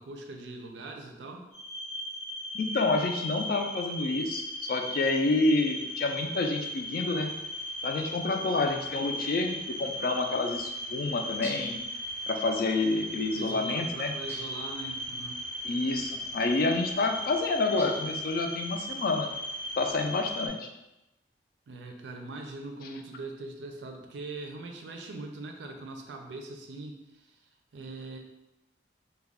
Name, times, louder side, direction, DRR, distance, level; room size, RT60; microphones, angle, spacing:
voice 1, 0.0-1.5 13.3-15.4 21.7-27.4 27.7-28.2, right 2 dB, 85° right, 3 dB, 0.4 m, -41 dB
sound 1, 1.5-20.5, equal, 90° left, 1.1 m, -37 dB
voice 2, 2.5-7.3 7.8-11.8 12.3-14.1 15.6-19.3 19.8-20.7, left 3 dB, 55° left, 4 dB, 0.3 m, -28 dB
sound 2, 11.4-11.9 14.3-14.7 17.8-18.2, right 1 dB, 15° right, 0.6 m, -44 dB
2.3 x 2.2 x 3.4 m, 0.94 s
head